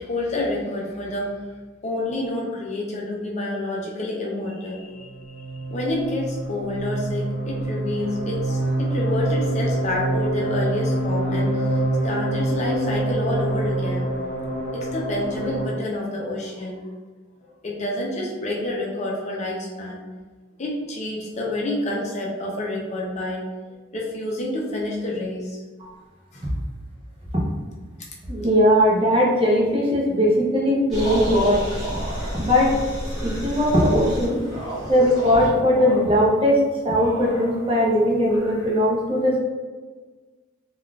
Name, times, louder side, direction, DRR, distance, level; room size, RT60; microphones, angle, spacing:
voice 1, 0.0-1.4 1.8-14.1 14.7-16.8 17.6-20.0 20.6-25.6 26.3-26.5, left 1 dB, 35° left, -3 dB, 0.5 m, -28 dB
sound 1, 4.9-15.7, right 1 dB, 55° left, 0.9 m, -26 dB
voice 2, 28.3-31.6 32.3-32.7 33.2-34.4 34.9-36.6 36.8-39.4, equal, 30° right, -4 dB, 0.6 m, -19 dB
sound 2, 30.9-38.8, right 1 dB, ahead, 1.3 m, -31 dB
3.5 x 2.3 x 2.3 m, 1.4 s
head